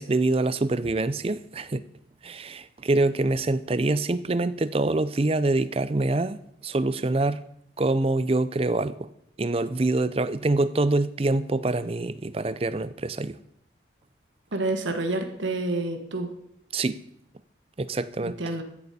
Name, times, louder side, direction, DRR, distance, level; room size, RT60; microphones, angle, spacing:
voice 1, 0.0-1.8 2.2-6.4 6.6-7.4 7.8-9.1 9.4-13.4 16.7-17.0 17.8-18.3, right 2 dB, 30° right, 15 dB, 0.5 m, -25 dB
voice 2, 14.5-16.3 18.2-18.6, right 2 dB, 85° right, 5 dB, 1.4 m, -28 dB
15.0 x 11.0 x 4.2 m, 0.75 s
head